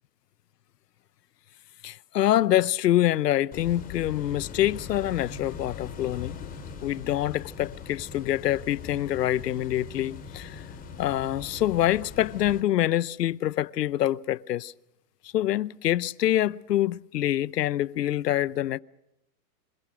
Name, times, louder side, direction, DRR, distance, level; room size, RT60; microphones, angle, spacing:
voice 1, 1.8-6.5 6.8-10.6 11.0-14.7 15.2-18.8, left 13 dB, 85° left, 0.8 m, -26 dB
sound 1, 3.5-12.6, left 6 dB, 20° left, 4.0 m, -41 dB
27.0 x 21.0 x 6.3 m
hypercardioid pair, 150°, 47 cm